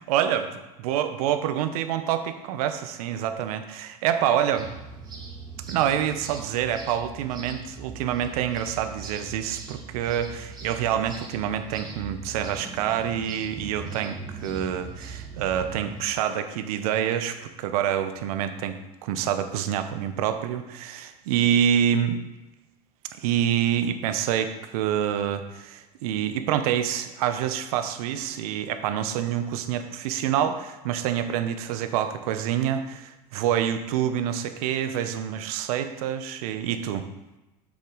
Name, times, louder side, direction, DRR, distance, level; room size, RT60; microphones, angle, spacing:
voice 1, 0.1-0.5 0.8-4.7 5.7-22.2 23.2-37.1, right 10 dB, 65° right, 9 dB, 0.9 m, -27 dB
sound 1, 4.5-16.0, right 4 dB, 20° right, 2.1 m, -40 dB
7.6 x 7.2 x 3.9 m, 1.0 s
hypercardioid pair, 90°, 20 cm